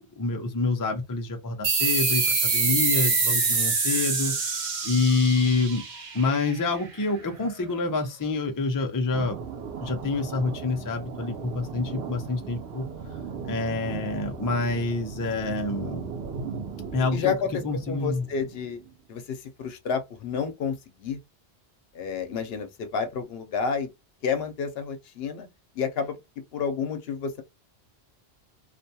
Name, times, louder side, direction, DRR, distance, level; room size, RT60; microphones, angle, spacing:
voice 1, 0.1-5.8 6.1-9.4 9.8-12.9 13.4-16.1 16.9-17.3 17.6-18.2, left 3 dB, 30° left, 0.4 m, -27 dB
sound 1, 1.6-6.8, right 4 dB, 50° right, 0.8 m, -25 dB
sound 2, 9.1-19.0, right 5 dB, 90° right, 0.9 m, -37 dB
voice 2, 17.1-18.8 19.1-21.2 21.9-23.9 24.2-25.5 25.7-26.2 26.5-27.4, left 6 dB, 75° left, 0.8 m, -30 dB
2.5 x 2.2 x 2.7 m
omnidirectional pair, 1.1 m